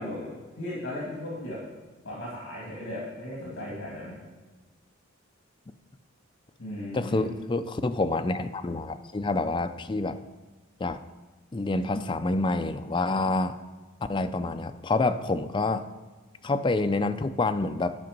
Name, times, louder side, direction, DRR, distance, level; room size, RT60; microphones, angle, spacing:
voice 1, 0.0-1.6 2.0-4.2 6.6-7.3, left 1 dB, 65° left, -6 dB, 2.5 m, -36 dB
voice 2, 6.9-10.2 10.8-11.0 11.5-13.5 14.1-15.9 16.4-18.0, left 2 dB, 25° left, 9 dB, 0.4 m, -27 dB
10.5 x 5.9 x 5.2 m, 1.3 s
head